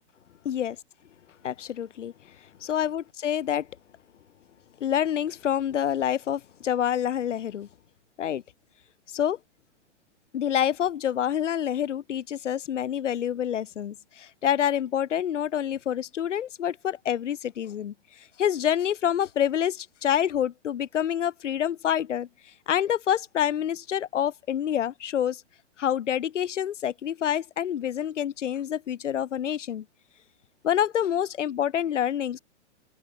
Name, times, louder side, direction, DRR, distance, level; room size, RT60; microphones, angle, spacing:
voice 1, 0.4-0.8 1.4-2.1 2.7-3.7 4.8-7.7 8.2-8.4 9.1-9.4 10.3-22.3 22.7-25.4 25.8-29.8 30.6-32.4, left 10 dB, 85° left, 0.8 m, -27 dB
open air
hypercardioid pair, 130°, 36 cm